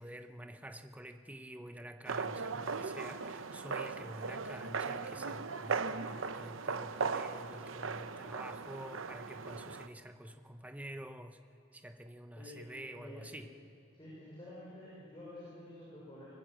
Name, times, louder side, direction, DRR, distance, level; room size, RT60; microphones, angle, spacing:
voice 1, 0.0-11.4 11.7-13.5, right 1 dB, 5° right, 8 dB, 0.9 m, -48 dB
sound 1, 2.1-9.9, right 4 dB, 80° right, 0.8 m, -38 dB
voice 2, 2.5-2.8 12.4-12.6 12.9-13.4 13.9-16.3, left 1 dB, 25° left, -7 dB, 5.8 m, -50 dB
22.5 x 20.0 x 7.5 m, 2.7 s
head